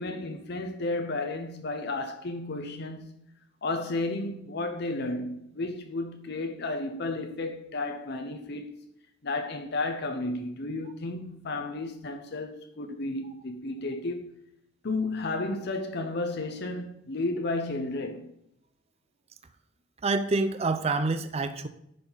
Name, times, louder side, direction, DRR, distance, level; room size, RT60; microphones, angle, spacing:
voice 1, 0.0-3.1 3.6-8.7 9.2-14.3 14.8-18.3, left 2 dB, 60° left, 0.7 m, -32 dB
voice 2, 20.0-21.7, right 3 dB, 35° right, 0.5 m, -27 dB
10.5 x 5.9 x 4.0 m
head